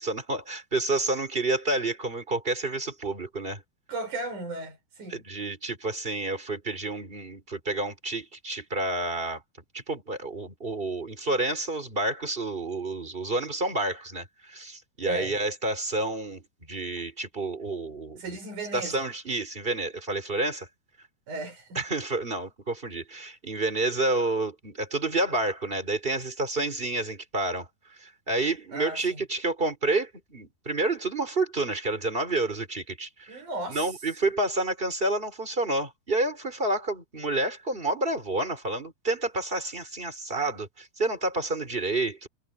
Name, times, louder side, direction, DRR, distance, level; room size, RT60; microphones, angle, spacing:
voice 1, 0.0-3.6 5.1-9.4 9.7-18.4 18.7-20.7 21.8-27.7 28.0-33.4 33.7-42.3, right 2 dB, 15° right, 3.6 m, -29 dB
voice 2, 3.9-5.2 15.0-15.4 18.2-19.1 21.3-21.8 28.7-29.2 33.3-33.9, right 2 dB, 55° right, 7.6 m, -36 dB
omnidirectional pair, 4.3 m